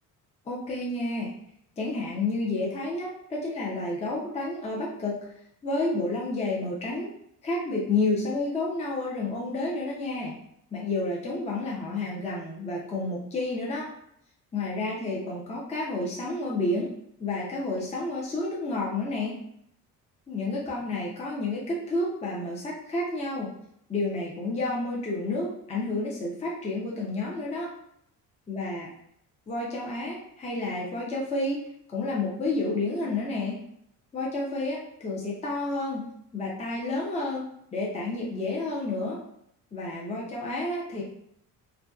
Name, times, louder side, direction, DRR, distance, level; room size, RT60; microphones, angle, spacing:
voice 1, 0.5-1.3 1.8-5.2 5.6-7.1 7.4-10.3 10.7-13.9 14.5-16.9 17.2-19.4 20.3-23.5 23.9-27.7 28.5-28.9 29.5-31.6 31.9-33.6 34.1-36.1 36.3-37.4 37.7-39.2 39.7-41.0, left 2 dB, 15° left, -3 dB, 0.5 m, -30 dB
2.5 x 2.2 x 2.3 m, 0.73 s
cardioid pair, 90°, 40 cm